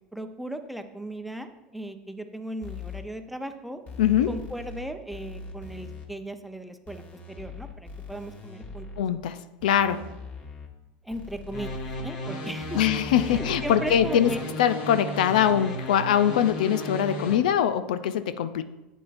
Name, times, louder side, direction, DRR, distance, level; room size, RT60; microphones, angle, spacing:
voice 1, 0.0-3.8 4.3-8.9 11.0-11.7 12.0-12.8 13.2-14.4, right 1 dB, ahead, 7 dB, 0.7 m, -37 dB
sound 1, 2.6-3.0 3.9-4.8 5.1-6.1 6.9-9.0 9.6-10.7 11.1-12.1 12.6-14.6, left 4 dB, 35° left, 1.7 m, -41 dB
voice 2, 4.0-4.3 9.0-10.1 12.8-14.3 14.6-18.6, left 9 dB, 80° left, 12 dB, 0.5 m, -23 dB
sound 2, 11.5-17.3, left 1 dB, 60° left, 2.1 m, -34 dB
11.5 x 8.1 x 2.6 m, 0.98 s
hypercardioid pair, 95°, 4 cm